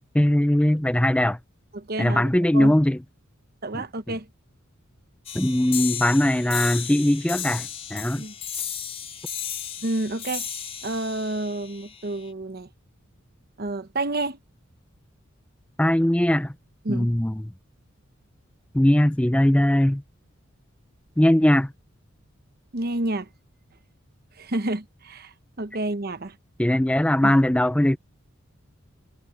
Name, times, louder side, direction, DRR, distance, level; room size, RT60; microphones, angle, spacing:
voice 1, 0.1-1.4 2.0-3.0 3.7-3.8 5.3-8.2 15.8-16.5 16.9-17.4 18.7-20.0 21.2-21.7 26.6-28.0, left 1 dB, 5° left, 0.5 m, -20 dB
voice 2, 1.7-2.7 3.6-4.3 8.2-8.3 9.8-10.5 10.8-12.7 13.6-14.4 16.8-17.1 22.7-23.3 24.4-26.4 27.2-27.3, right 2 dB, 50° right, 1.0 m, -29 dB
sound 1, 5.3-12.3, left 9 dB, 30° left, 4.4 m, -34 dB
head